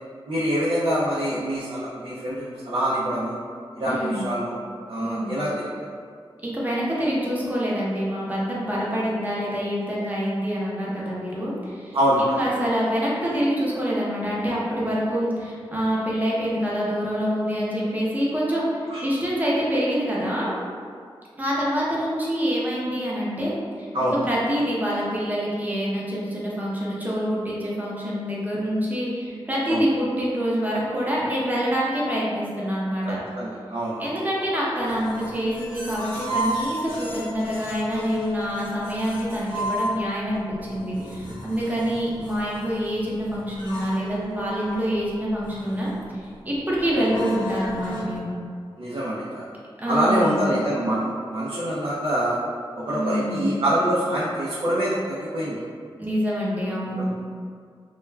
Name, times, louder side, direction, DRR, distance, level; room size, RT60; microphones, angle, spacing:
voice 1, 0.3-3.4 3.7-4.6 4.9-5.7 11.9-12.4 18.9-19.0 23.9-24.1 29.7-29.8 33.0-34.1 48.8-49.4 49.9-52.4 52.7-55.6 56.8-57.1, equal, 65° right, -10 dB, 0.5 m, -25 dB
voice 2, 3.8-4.3 5.0-5.4 6.4-20.5 21.4-23.5 23.8-33.2 34.0-48.3 49.8-50.6 52.9-53.6 56.0-57.1, equal, 15° right, -6 dB, 0.6 m, -26 dB
sound 1, 34.8-48.2, equal, 55° left, 1.0 m, -33 dB
2.3 x 2.2 x 3.2 m, 2.1 s
wide cardioid pair, 80°, 10 cm